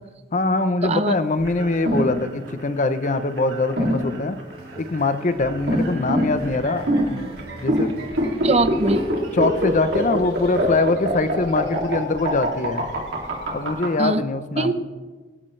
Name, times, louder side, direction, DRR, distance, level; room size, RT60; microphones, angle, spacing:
voice 1, 0.3-4.4 4.8-7.3 7.6-7.9 9.3-12.9 13.5-14.8, left 3 dB, 45° left, 11 dB, 0.8 m, -23 dB
voice 2, 0.8-1.1 8.4-9.0 14.0-14.2 14.6-14.8, right 2 dB, 35° right, 10 dB, 0.8 m, -21 dB
sound 1, 1.4-13.9, equal, 70° right, 2.7 m, -24 dB
sound 2, 4.5-10.8, equal, 55° right, 3.3 m, -42 dB
25.0 x 11.0 x 3.3 m, 1.4 s
head